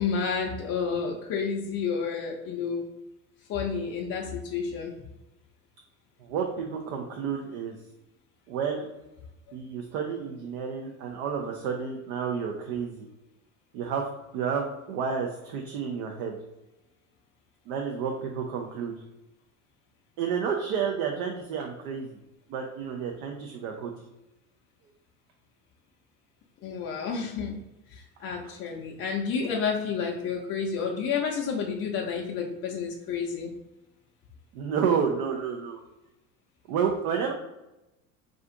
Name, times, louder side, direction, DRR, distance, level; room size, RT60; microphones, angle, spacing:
voice 1, 0.0-2.9 3.5-4.9 26.6-27.6 28.2-33.5, left 6 dB, 35° left, -1 dB, 0.5 m, -30 dB
voice 2, 6.2-7.8 8.5-8.9 9.5-13.0 13.7-16.4 17.7-19.0 20.2-22.2 22.5-23.9 34.5-35.8 36.7-37.3, right 6 dB, 65° right, 2 dB, 0.6 m, -30 dB
2.5 x 2.4 x 3.7 m, 0.95 s
hypercardioid pair, 85°, 44 cm